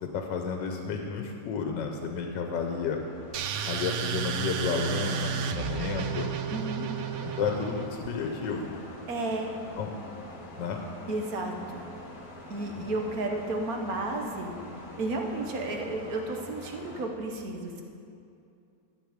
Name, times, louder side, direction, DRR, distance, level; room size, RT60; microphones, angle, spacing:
voice 1, 0.0-3.0 3.7-6.3 7.2-8.7 9.8-9.9 10.6-10.8 12.8-12.9, left 5 dB, 90° left, 3 dB, 1.4 m, -31 dB
sound 1, 2.1-17.1, left 1 dB, 30° left, 1.3 m, -46 dB
sound 2, 3.3-8.1, right 7 dB, 80° right, 0.6 m, -32 dB
voice 2, 6.5-6.9 9.1-9.5 11.1-11.8 12.5-14.5 15.0-17.8, right 2 dB, 60° right, 2 dB, 1.4 m, -32 dB
12.5 x 7.9 x 5.0 m, 2.5 s
omnidirectional pair, 1.9 m